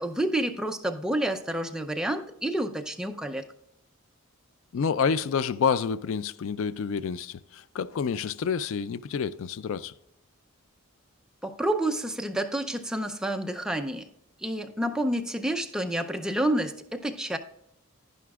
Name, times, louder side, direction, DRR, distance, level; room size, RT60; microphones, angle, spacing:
voice 1, 0.0-3.4 11.4-14.1 14.4-17.4, right 1 dB, 5° right, 0.5 m, -29 dB
voice 2, 4.7-9.9, left 6 dB, 70° left, 0.4 m, -28 dB
11.0 x 10.5 x 2.4 m
head